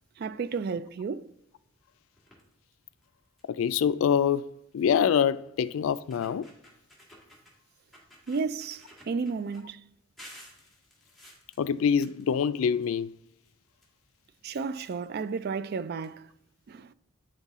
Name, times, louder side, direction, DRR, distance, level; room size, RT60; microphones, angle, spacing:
voice 1, 0.2-1.3 8.3-9.9 14.4-16.3 16.7-16.9, right 5 dB, 50° right, 0.3 m, -33 dB
sound 1, 2.2-2.5 3.0-3.1 3.4-3.7 4.9-5.0 5.6-5.7 6.0-7.5 7.9-9.6 10.2-13.0 13.3-14.4 15.3-15.4 15.6-15.7 16.0-16.1, equal, ahead, 1.8 m, -53 dB
voice 2, 3.5-4.5 4.7-6.5 11.6-13.1, left 7 dB, 85° left, 0.3 m, -25 dB
8.8 x 5.6 x 3.6 m
head